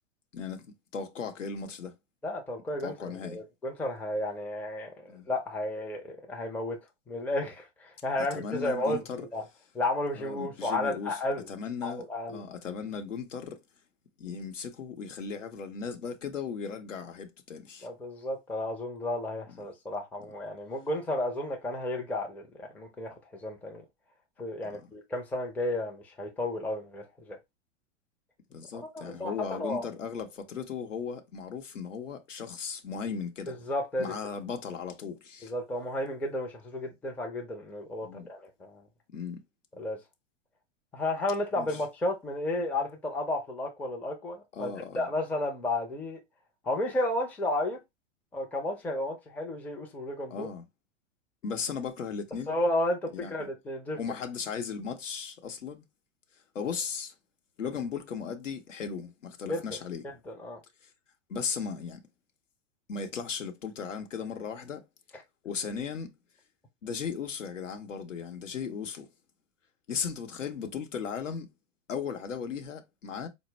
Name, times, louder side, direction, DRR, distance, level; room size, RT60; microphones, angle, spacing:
voice 1, 0.3-1.9 2.8-3.4 5.1-5.3 8.2-9.3 10.2-11.2 11.5-12.0 12.3-13.6 14.2-17.9 28.5-33.6 34.0-35.5 38.0-38.3 39.1-39.4 41.5-41.8 44.5-45.1 50.3-50.6 51.4-52.6 53.1-53.3 54.0-55.8 56.5-57.1 57.6-60.0 61.3-62.0 62.9-64.8 65.4-66.1 66.8-69.1 69.9-71.5 71.9-73.3, left 6 dB, 85° left, 0.8 m, -36 dB
voice 2, 2.2-6.8 7.1-9.4 9.7-11.5 11.8-12.4 17.8-23.8 24.4-27.4 28.7-29.9 33.5-34.1 35.4-38.9 39.8-40.0 40.9-46.2 46.6-47.8 48.3-50.5 52.5-54.0 59.5-59.6 60.3-60.6, left 1 dB, 5° left, 0.4 m, -33 dB
4.1 x 2.0 x 3.2 m
hypercardioid pair, 105°, 36 cm